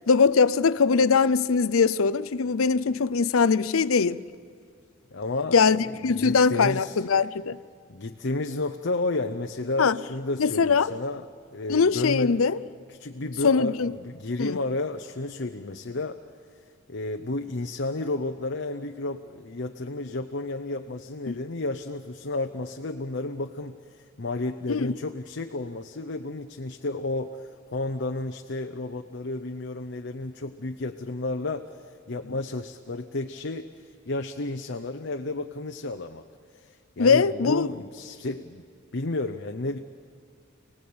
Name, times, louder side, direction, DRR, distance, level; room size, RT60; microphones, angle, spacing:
voice 1, 0.1-4.2 5.5-7.6 9.8-10.0 10.4-11.0 11.7-12.6 13.4-13.9 14.4-14.6 21.3-21.4 24.7-24.9 37.0-37.7, left 5 dB, 80° left, 0.6 m, -21 dB
voice 2, 5.1-7.0 7.9-11.3 11.5-12.4 13.0-16.2 16.9-31.7 32.1-36.2 36.5-38.6 38.9-39.8, left 2 dB, 60° left, 0.9 m, -32 dB
30.0 x 19.0 x 8.7 m
head